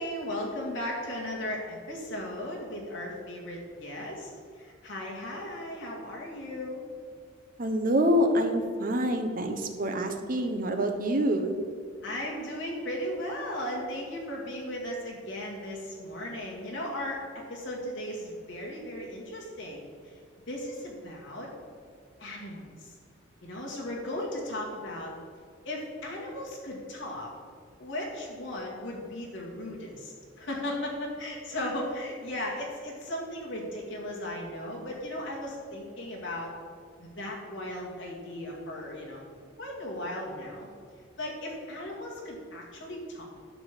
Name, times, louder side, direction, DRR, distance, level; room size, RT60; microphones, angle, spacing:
voice 1, 0.0-4.3 4.6-6.8 12.0-19.8 20.5-21.5 22.2-22.9 23.4-25.1 25.7-27.3 27.8-36.5 37.0-39.2 39.6-40.7 41.2-43.2, left 1 dB, 70° left, -3 dB, 2.1 m, -36 dB
voice 2, 7.6-11.5, equal, 45° right, 5 dB, 0.8 m, -26 dB
11.0 x 3.6 x 7.4 m, 2.1 s
head